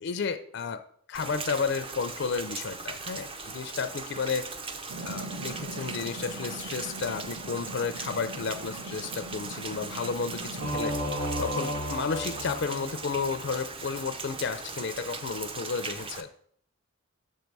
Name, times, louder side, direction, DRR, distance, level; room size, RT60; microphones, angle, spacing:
voice 1, 0.0-0.8 1.1-4.5 5.0-10.9 11.4-16.3, left 5 dB, 55° left, 10 dB, 0.4 m, -32 dB
Rain, 1.1-16.2, right 4 dB, 25° right, 0.5 m, -39 dB
sound 1, 4.9-10.7, right 2 dB, 60° right, 0.7 m, -42 dB
Singing / Musical instrument, 10.6-13.5, equal, 90° right, 1.8 m, -33 dB
6.5 x 4.6 x 5.3 m, 0.62 s
head